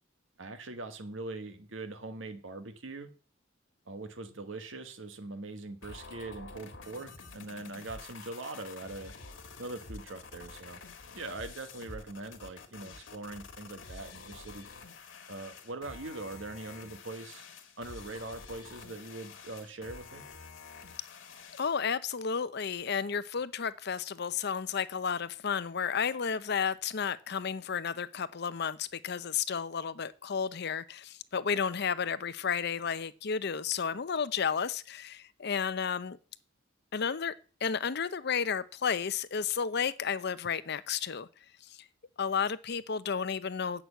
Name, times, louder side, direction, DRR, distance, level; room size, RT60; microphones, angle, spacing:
voice 1, 0.4-3.1 3.9-9.1 9.6-10.8 11.1-14.7 15.3-17.5 17.8-20.2, right 2 dB, 80° right, 1.2 m, -42 dB
sound 1, 5.8-21.8, left 4 dB, 75° left, 1.6 m, -48 dB
voice 2, 21.5-36.2 36.9-37.3 37.6-41.3 41.6-41.8 42.2-43.8, left 6 dB, 55° left, 0.6 m, -32 dB
8.1 x 6.1 x 8.1 m
head